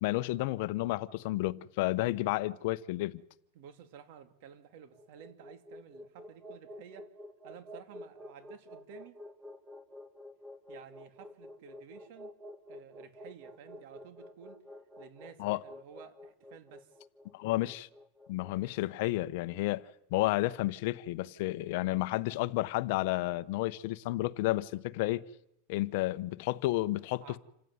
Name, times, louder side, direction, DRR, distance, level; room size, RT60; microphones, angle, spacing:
voice 1, 0.0-3.2 15.4-15.6 17.3-17.9 18.3-19.8 20.1-25.2 25.7-27.4, left 18 dB, 55° left, 0.9 m, -31 dB
voice 2, 3.5-7.1 7.4-9.2 10.7-12.3 12.7-14.6 15.0-16.9 27.2-27.4, right 8 dB, 55° right, 2.5 m, -53 dB
sound 1, 4.8-19.1, left 1 dB, 10° right, 1.8 m, -50 dB
27.5 x 15.5 x 9.6 m
supercardioid pair, 150°, 0 cm